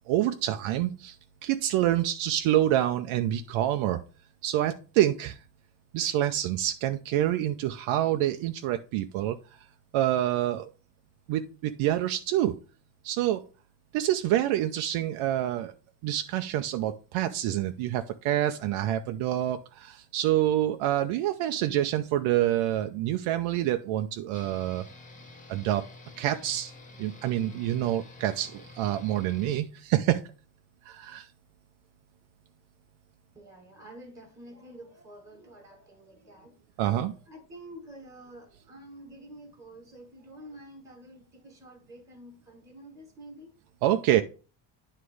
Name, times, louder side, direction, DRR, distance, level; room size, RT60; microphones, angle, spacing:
voice 1, 0.1-1.2 1.4-4.0 4.4-5.4 5.9-9.4 9.9-10.7 11.3-12.6 13.0-13.4 13.9-15.7 16.0-24.8 25.5-25.9 26.2-26.7 27.0-30.3 30.9-31.3 36.8-37.1 43.8-44.2, right 13 dB, 80° right, 0.7 m, -27 dB
sound 1, 24.3-29.6, left 2 dB, 15° left, 1.0 m, -49 dB
voice 2, 33.3-36.7 37.1-43.5, right 1 dB, 5° right, 1.5 m, -48 dB
9.6 x 3.3 x 4.9 m
cardioid pair, 150°, 48 cm